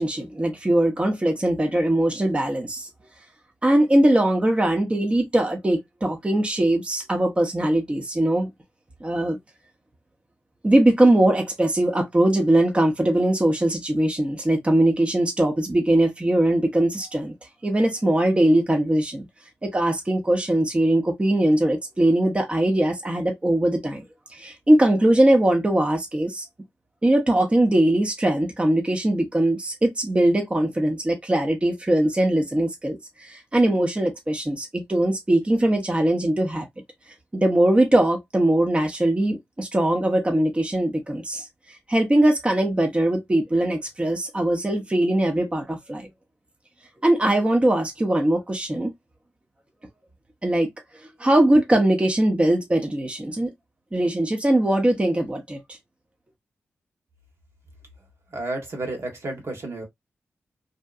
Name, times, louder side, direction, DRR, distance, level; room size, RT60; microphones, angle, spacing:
voice 1, 0.0-2.9 3.6-8.5 9.0-9.4 10.6-17.3 17.6-19.3 19.6-24.0 24.3-26.5 27.0-36.7 37.3-46.1 47.0-48.9 50.4-50.7 51.2-53.5 53.9-55.6, right 1 dB, 25° right, 0.7 m, -21 dB
voice 2, 58.3-59.8, right 2 dB, 65° right, 1.2 m, -31 dB
2.7 x 2.2 x 2.3 m
supercardioid pair, 45°, 5 cm